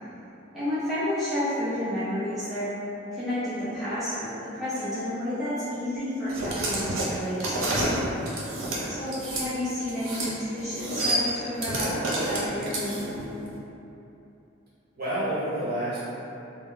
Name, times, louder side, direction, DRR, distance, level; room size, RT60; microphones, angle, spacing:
voice 1, 0.5-2.7 3.1-7.8 8.9-13.3, left 1 dB, ahead, -15 dB, 0.6 m, -31 dB
sound 1, 6.3-9.5 9.9-10.3 10.6-13.2, right 1 dB, 85° right, 0.6 m, -29 dB
voice 2, 14.9-16.0, right 1 dB, 50° right, -11 dB, 1.0 m, -29 dB
2.1 x 2.1 x 3.6 m, 2.9 s
head